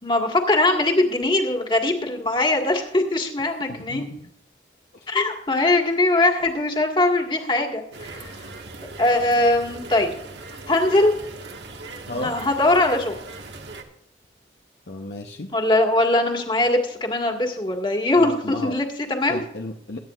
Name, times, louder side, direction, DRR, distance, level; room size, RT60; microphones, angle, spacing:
voice 1, 0.0-4.1 5.1-8.5 9.0-10.1 10.7-11.1 12.1-13.2 15.5-19.4, left 2 dB, 25° left, 2 dB, 1.8 m, -21 dB
voice 2, 3.7-4.2 4.9-5.1 12.1-12.3 14.9-15.5 18.1-18.7 19.3-20.0, left 2 dB, 65° left, 2 dB, 0.9 m, -33 dB
sound 1, 7.9-13.8, right 3 dB, 80° right, 1.7 m, -39 dB
22.5 x 9.4 x 2.5 m, 0.78 s
head